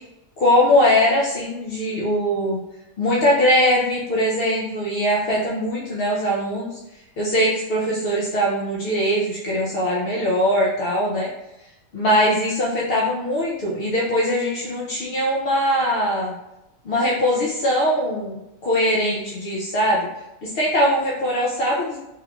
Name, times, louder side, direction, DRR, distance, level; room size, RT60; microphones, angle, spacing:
voice 1, 0.4-2.6 3.0-6.7 7.2-11.3 11.9-16.3 16.8-20.1 20.4-22.0, equal, 75° left, -4 dB, 0.5 m, -21 dB
3.6 x 3.2 x 2.3 m, 0.92 s
omnidirectional pair, 1.8 m